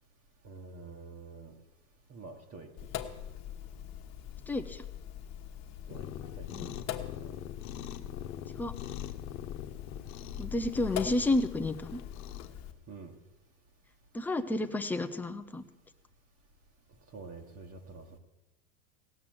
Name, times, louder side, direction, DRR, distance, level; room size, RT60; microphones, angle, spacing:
voice 1, 0.4-1.6 2.1-2.9 5.9-6.1 6.4-6.9 7.2-7.4 12.9-13.1 17.1-18.2, right 3 dB, 30° right, 1.4 m, -47 dB
Sink (filling or washing), 2.8-12.7, left 10 dB, 40° left, 1.3 m, -42 dB
voice 2, 4.5-4.8 6.5-6.8 8.6-8.7 10.4-12.0 14.1-15.6, left 2 dB, 5° left, 0.5 m, -31 dB
Cat, 5.9-12.5, left 11 dB, 75° left, 1.1 m, -43 dB
17.0 x 6.0 x 7.8 m
supercardioid pair, 120°, 43 cm